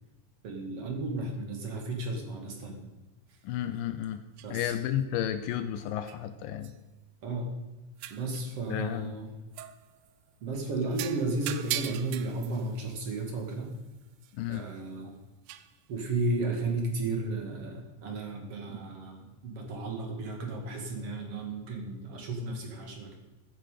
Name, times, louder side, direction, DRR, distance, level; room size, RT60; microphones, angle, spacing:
voice 1, 0.4-2.8 4.4-4.7 7.2-7.5 8.1-9.3 10.4-13.7 14.5-15.1 15.9-23.2, right 2 dB, 50° right, 2 dB, 2.7 m, -34 dB
sound 1, 3.3-3.4 4.4-4.6 6.1-6.2 6.6-6.8 8.0-8.5 9.5-10.3 10.9-14.8 15.5-15.8, right 13 dB, 80° right, 1.9 m, -41 dB
voice 2, 3.4-4.2 4.5-6.7 8.7-9.2 14.3-14.6, left 11 dB, 80° left, 10 dB, 2.4 m, -32 dB
15.0 x 9.2 x 5.0 m, 1.1 s
omnidirectional pair, 4.0 m